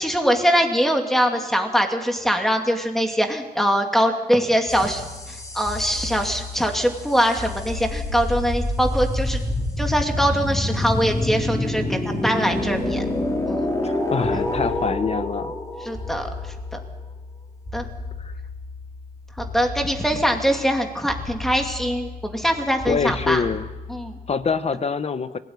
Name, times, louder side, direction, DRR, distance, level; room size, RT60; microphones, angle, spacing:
voice 1, 0.0-9.4 9.8-13.0 13.5-13.6 15.8-16.3 17.7-17.9 19.4-23.4 23.9-24.1, equal, ahead, 3 dB, 2.6 m, -22 dB
sound 1, 4.7-24.3, left 2 dB, 20° left, 4.0 m, -29 dB
voice 2, 13.8-15.5 18.2-18.3 22.9-23.7 24.3-25.4, left 5 dB, 45° left, 13 dB, 0.9 m, -25 dB
25.0 x 17.5 x 9.6 m, 1.2 s
wide cardioid pair, 165°, 15 cm